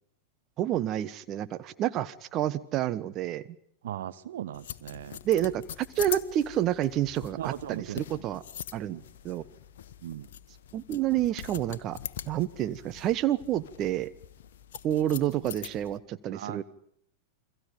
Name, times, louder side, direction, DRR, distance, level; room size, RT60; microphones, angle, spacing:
voice 1, 0.6-3.4 5.2-8.4 8.7-9.0 9.2-9.4 10.7-12.0 12.3-14.1 14.8-16.6, right 12 dB, 35° right, 13 dB, 1.4 m, -29 dB
voice 2, 3.8-5.2 7.4-8.0 8.9-9.0 10.0-10.3 16.3-16.6, right 12 dB, 60° right, 12 dB, 1.0 m, -38 dB
sound 1, 4.5-16.0, left 10 dB, 55° left, 1.2 m, -43 dB
29.5 x 24.5 x 5.2 m, 0.65 s
figure-of-eight pair, 90°, 0 cm